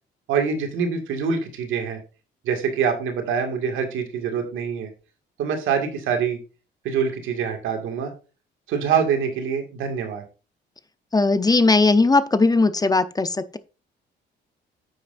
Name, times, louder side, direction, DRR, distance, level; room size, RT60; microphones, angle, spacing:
voice 1, 0.3-2.0 2.4-4.9 5.4-6.4 6.8-8.1 8.7-10.2, right 6 dB, 85° right, 2.1 m, -25 dB
voice 2, 11.1-13.6, left 3 dB, 20° left, 0.7 m, -18 dB
9.3 x 7.8 x 2.6 m
cardioid pair, 90°, 20 cm